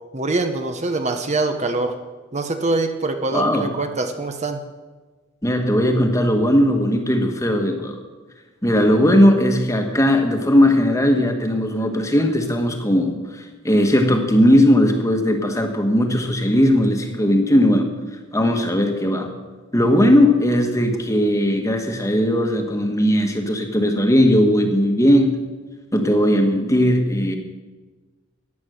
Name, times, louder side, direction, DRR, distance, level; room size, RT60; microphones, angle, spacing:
voice 1, 0.1-1.9 2.3-4.6, right 3 dB, 35° right, 7 dB, 0.8 m, -24 dB
voice 2, 3.3-3.7 5.4-8.0 8.6-17.9 18.3-19.3 19.7-25.4 25.9-27.4, equal, 15° left, 5 dB, 1.3 m, -18 dB
14.5 x 10.5 x 6.4 m, 1.3 s
head